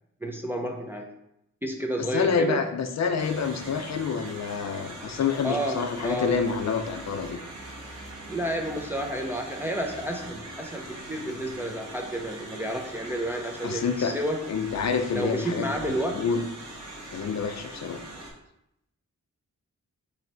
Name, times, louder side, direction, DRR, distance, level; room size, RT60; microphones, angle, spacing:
voice 1, 0.2-1.1 1.6-2.6 5.4-6.4 8.3-14.4 15.1-16.2, right 1 dB, 5° right, 1 dB, 0.4 m, -30 dB
voice 2, 2.1-7.4 13.6-14.1 14.5-16.4 17.1-18.0, left 5 dB, 60° left, 7 dB, 0.4 m, -27 dB
quarry soundscape, 3.2-18.3, right 1 dB, 55° right, 1.3 m, -42 dB
3.8 x 3.1 x 4.4 m, 0.81 s
wide cardioid pair, 175°, 31 cm